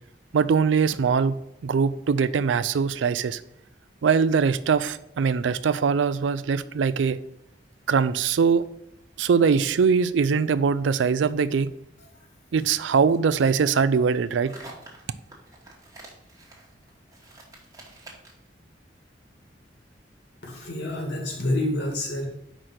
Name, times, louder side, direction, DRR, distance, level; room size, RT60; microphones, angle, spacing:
voice 1, 0.3-1.4 1.6-3.4 4.0-7.2 7.9-8.6 9.2-11.7 12.5-14.5, right 6 dB, 90° right, 0.4 m, -22 dB
sound 1, 12.6-18.5, right 2 dB, 20° right, 1.2 m, -48 dB
voice 2, 20.4-22.3, left 1 dB, 70° left, 1.9 m, -28 dB
5.1 x 4.4 x 6.1 m
head